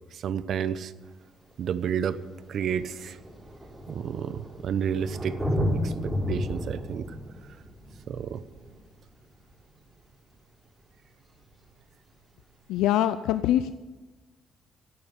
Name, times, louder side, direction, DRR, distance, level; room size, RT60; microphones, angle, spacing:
voice 1, 0.1-0.9 1.6-2.2 2.5-3.2 3.9-5.4 5.8-7.1 8.1-8.4, right 8 dB, 65° right, 14 dB, 0.7 m, -30 dB
Thunder, 1.1-1.2 2.1-2.2 2.4-9.8 11.4-11.5, equal, 15° right, 4.3 m, -33 dB
voice 2, 12.7-13.7, left 12 dB, 85° left, 13 dB, 0.4 m, -23 dB
11.0 x 8.7 x 9.8 m, 1.3 s
supercardioid pair, 70°, 0 cm